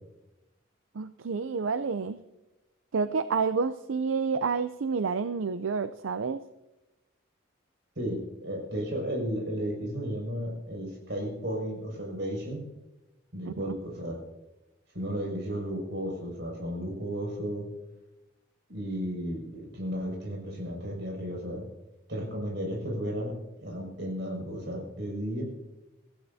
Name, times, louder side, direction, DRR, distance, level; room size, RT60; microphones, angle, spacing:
voice 1, 0.9-2.2 2.9-6.4 13.5-13.7, right 5 dB, 80° right, 12 dB, 0.5 m, -29 dB
voice 2, 8.0-12.6 13.3-14.2 14.9-17.7 18.7-21.6 22.1-25.4, equal, 60° right, 0 dB, 6.1 m, -34 dB
25.0 x 15.0 x 2.7 m, 0.99 s
head